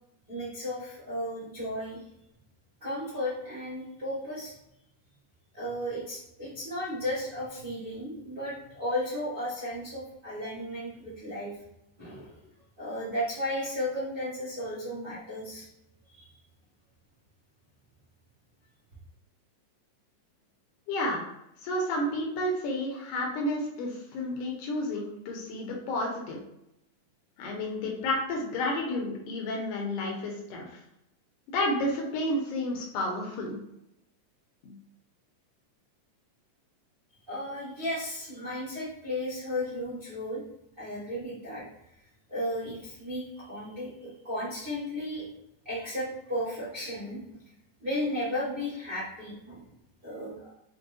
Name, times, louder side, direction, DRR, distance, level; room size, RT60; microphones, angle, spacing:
voice 1, 0.3-2.0 2.8-4.5 5.5-11.5 12.0-12.3 12.8-15.7 16.1-16.3 37.3-40.4 40.8-41.6 42.3-45.3 45.6-47.4 47.8-49.6 50.0-50.3, left 1 dB, 55° right, -10 dB, 0.5 m, -34 dB
voice 2, 20.9-21.2 21.6-26.4 27.4-30.8 31.5-33.6 34.6-34.7, left 1 dB, 75° left, -1 dB, 2.2 m, -31 dB
6.1 x 2.1 x 2.6 m, 0.83 s
omnidirectional pair, 3.8 m